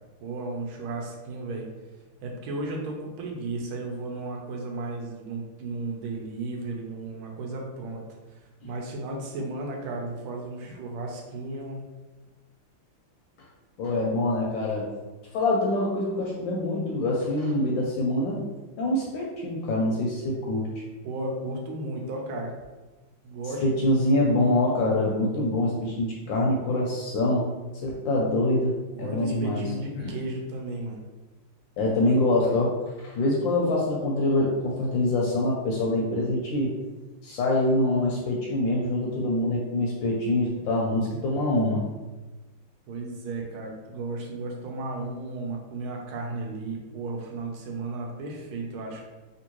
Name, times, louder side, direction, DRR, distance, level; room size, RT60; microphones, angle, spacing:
voice 1, 0.2-1.7 2.2-8.0 8.6-11.8 21.0-22.5 23.2-23.6 28.9-31.0 42.9-49.1, right 2 dB, 80° right, 0 dB, 1.5 m, -34 dB
voice 2, 13.8-14.9 15.3-18.4 18.8-20.7 23.6-27.5 27.8-29.6 30.0-30.1 31.8-36.7 37.2-41.8, left 1 dB, 75° left, -3 dB, 1.2 m, -25 dB
3.6 x 2.5 x 2.9 m, 1.2 s
omnidirectional pair, 2.4 m